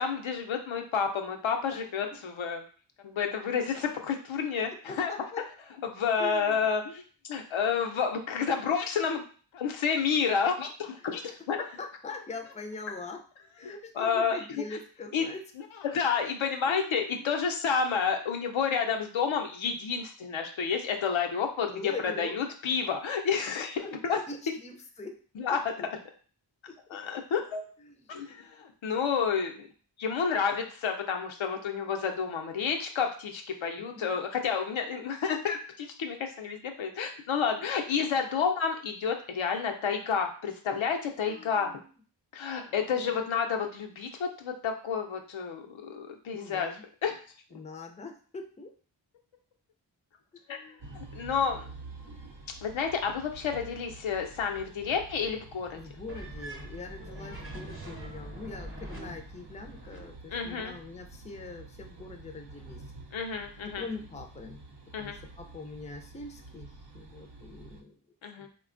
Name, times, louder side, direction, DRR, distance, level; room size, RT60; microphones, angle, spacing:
voice 1, 0.0-2.6 3.0-5.1 5.8-7.0 7.3-9.2 9.5-11.6 14.0-14.6 15.1-15.2 15.8-24.2 24.5-24.6 25.4-25.6 26.9-27.7 28.1-29.7 30.0-41.7 42.3-46.7 47.0-47.2 47.5-47.6 50.5-50.6 50.9-51.7 52.6-55.8 60.3-60.7 63.1-63.8 64.9-65.2 68.2-68.5, left 6 dB, 85° left, 4 dB, 0.5 m, -30 dB
voice 2, 4.9-5.4 6.2-6.7 11.0-11.2 11.6-13.3 13.6-15.4 16.7-17.3 21.7-22.5 23.8-25.2 26.7-26.8 27.8-28.0 33.8-34.2 37.6-37.9 41.2-41.9 42.6-43.2 46.3-46.8 47.5-48.7 50.3-50.8 55.7-62.9 63.6-64.6 65.0-68.5, left 3 dB, 15° left, 4 dB, 0.4 m, -43 dB
sound 1, 50.8-67.8, right 3 dB, 60° right, 0.6 m, -49 dB
sound 2, 56.1-60.1, right 1 dB, 30° right, 0.9 m, -43 dB
3.2 x 2.2 x 2.5 m, 0.41 s
cardioid pair, 40°, 46 cm